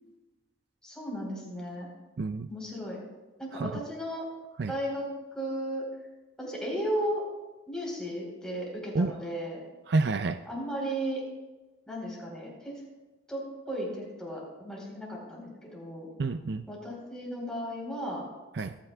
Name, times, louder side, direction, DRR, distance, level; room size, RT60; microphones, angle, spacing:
voice 1, 0.8-1.9 2.5-3.0 3.4-4.2 4.7-5.1 5.3-5.8 6.4-7.2 7.7-9.6 10.5-11.2 11.9-12.7 13.3-16.1 16.7-18.2, equal, 5° left, -3 dB, 4.4 m, -35 dB
voice 2, 2.2-2.5 3.5-3.8 4.6-4.7 8.9-9.1 9.9-10.4 16.2-16.6 18.5-18.8, right 3 dB, 60° right, 10 dB, 0.4 m, -29 dB
26.5 x 10.0 x 2.4 m, 1.1 s
head